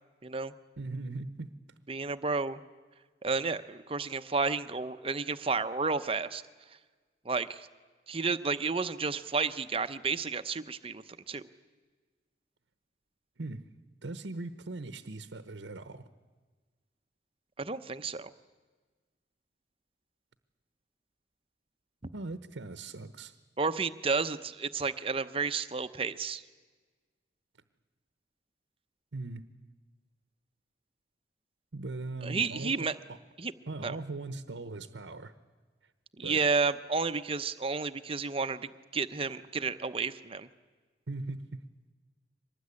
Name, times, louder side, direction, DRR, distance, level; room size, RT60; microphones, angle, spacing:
voice 1, 0.2-0.5 1.9-2.6 3.2-6.4 7.2-7.7 8.1-11.4 17.6-18.3 23.6-26.4 32.2-32.9 33.4-33.5 33.8-34.0 36.2-40.5, right 4 dB, 30° right, 0.8 m, -31 dB
voice 2, 0.8-1.5 13.4-13.7 14.0-16.1 22.1-23.4 29.1-29.5 31.7-33.2 33.7-35.3 36.2-36.4 41.1-41.6, right 2 dB, 90° right, 1.0 m, -40 dB
24.0 x 19.5 x 9.8 m
head